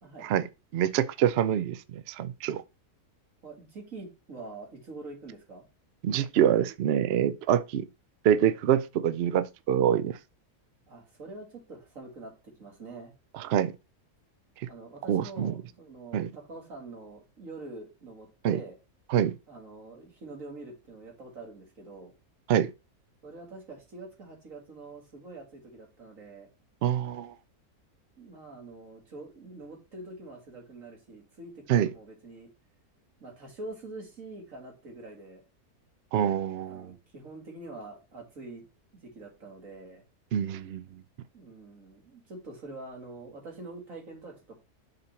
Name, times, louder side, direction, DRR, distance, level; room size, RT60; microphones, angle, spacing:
voice 1, 0.7-2.6 6.0-7.9 8.2-10.2 13.3-13.7 14.6-14.7 15.1-15.5 16.1-16.3 18.4-18.6 19.1-19.3 22.5-22.7 26.8-27.3 31.7-31.9 36.1-36.9 40.3-41.0, right 10 dB, 80° right, 0.5 m, -26 dB
voice 2, 3.4-5.7 10.9-13.1 14.7-18.7 19.5-22.1 23.2-26.5 28.2-32.5 33.2-35.4 36.6-38.6 39.0-40.0 41.3-44.6, right 2 dB, 55° right, 2.7 m, -45 dB
6.8 x 4.2 x 4.2 m
omnidirectional pair, 1.6 m